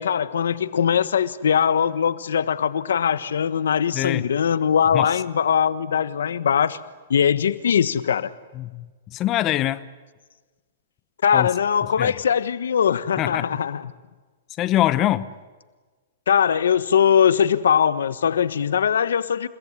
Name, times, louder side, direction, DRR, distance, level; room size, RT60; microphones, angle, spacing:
voice 1, 0.0-6.8 7.1-8.3 11.2-13.9 16.3-19.5, left 8 dB, 90° left, 1.4 m, -21 dB
voice 2, 3.9-4.3 4.9-5.1 8.5-9.8 11.3-11.5 12.0-12.1 13.2-13.5 14.6-15.3, left 14 dB, 25° left, 0.9 m, -23 dB
30.0 x 18.5 x 9.8 m
hypercardioid pair, 155°, 0 cm